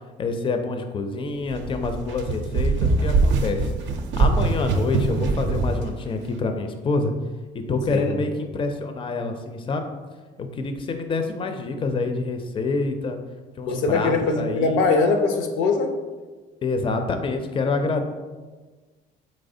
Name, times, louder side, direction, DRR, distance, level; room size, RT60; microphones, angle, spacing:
voice 1, 0.2-3.6 4.2-7.1 7.5-9.8 10.4-13.2 13.6-14.8 16.6-18.0, left 3 dB, 25° left, 6 dB, 0.4 m, -27 dB
sound 1, 1.5-5.8, right 3 dB, 65° right, 0.4 m, -22 dB
voice 2, 13.7-15.9, left 4 dB, 75° left, 5 dB, 0.5 m, -21 dB
4.1 x 3.1 x 2.6 m, 1.3 s
supercardioid pair, 65°, 20 cm